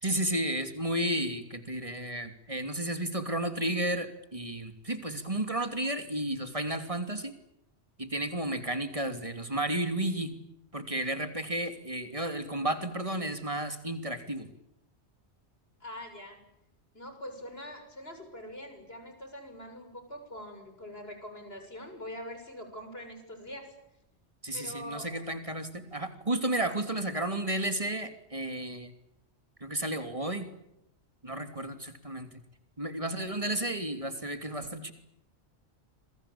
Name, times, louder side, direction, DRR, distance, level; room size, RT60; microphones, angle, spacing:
voice 1, 0.0-7.3 8.0-10.3 10.7-14.5 24.4-28.9 29.6-30.5 31.2-32.3 32.8-34.9, right 1 dB, 30° right, 8 dB, 3.1 m, -32 dB
voice 2, 15.8-16.4 16.9-23.7 24.5-25.1, equal, 60° left, 6 dB, 7.3 m, -43 dB
27.5 x 23.5 x 8.8 m, 0.81 s
omnidirectional pair, 1.1 m